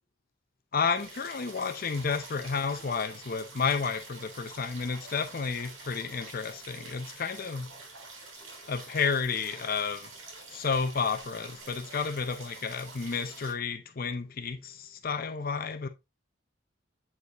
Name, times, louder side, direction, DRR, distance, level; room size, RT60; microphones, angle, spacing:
voice 1, 0.7-7.7 8.7-10.1 10.5-15.9, left 5 dB, 45° left, 0.5 m, -31 dB
sound 1, 1.0-13.5, right 3 dB, 75° right, 3.1 m, -47 dB
8.1 x 4.8 x 2.9 m
head